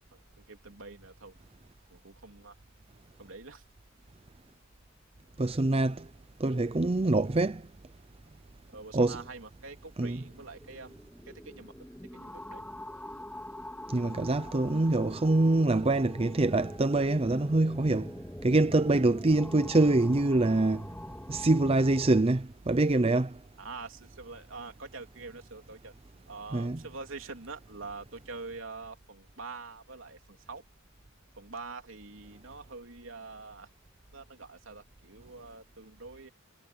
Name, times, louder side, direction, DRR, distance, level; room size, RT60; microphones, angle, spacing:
voice 1, 0.1-1.3 1.9-2.5 3.2-3.6 8.7-11.0 11.4-11.7 12.1-12.6 23.6-25.9 26.3-30.6 31.4-33.7 34.1-36.3, right 3 dB, 75° right, 3.3 m, -45 dB
voice 2, 5.4-6.1 6.4-7.6 8.9-9.2 10.0-10.2 13.9-18.1 18.4-20.8 21.3-23.3 26.5-26.8, right 2 dB, 30° right, 0.6 m, -25 dB
sound 1, 10.2-22.2, left 1 dB, 10° left, 2.7 m, -44 dB
head